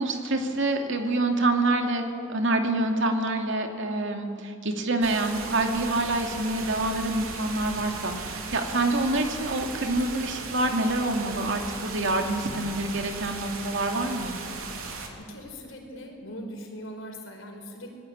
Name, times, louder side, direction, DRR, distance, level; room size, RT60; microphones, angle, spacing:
voice 1, 0.0-2.0 2.3-14.3, right 2 dB, 60° right, 4 dB, 2.5 m, -26 dB
sound 1, 5.0-15.1, right 4 dB, 85° right, 3.2 m, -37 dB
voice 2, 15.2-17.9, equal, 65° left, 2 dB, 4.8 m, -41 dB
25.0 x 19.5 x 8.7 m, 2.6 s
head